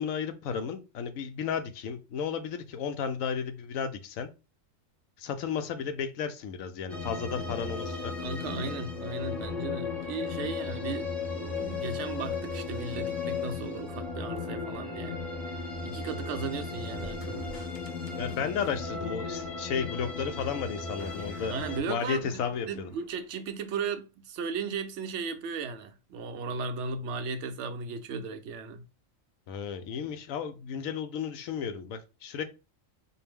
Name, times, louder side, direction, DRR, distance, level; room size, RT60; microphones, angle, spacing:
voice 1, 0.0-4.3 5.2-8.2 18.2-21.5 21.9-22.9 29.5-32.4, left 7 dB, 80° left, 1.0 m, -33 dB
sound 1, 6.9-21.8, left 4 dB, ahead, 0.5 m, -36 dB
voice 2, 8.2-15.2 15.5-17.6 21.5-28.9, right 4 dB, 70° right, 0.8 m, -36 dB
sound 2, 16.8-19.9 20.1-20.3 21.0-23.3, left 1 dB, 45° left, 0.7 m, -49 dB
4.3 x 2.1 x 3.4 m
omnidirectional pair, 1.4 m